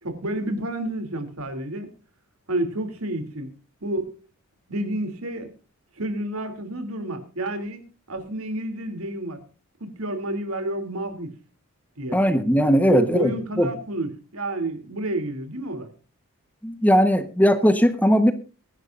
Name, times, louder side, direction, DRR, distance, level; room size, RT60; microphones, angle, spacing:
voice 1, 0.0-1.9 2.5-3.5 3.8-4.2 4.7-5.5 6.0-9.4 9.8-11.3 12.0-12.2 12.9-15.9, right 1 dB, 75° right, 8 dB, 2.8 m, -30 dB
voice 2, 12.1-13.3 13.6-13.7 16.6-18.3, equal, 5° left, 10 dB, 1.0 m, -18 dB
23.0 x 11.0 x 2.5 m, 0.34 s
head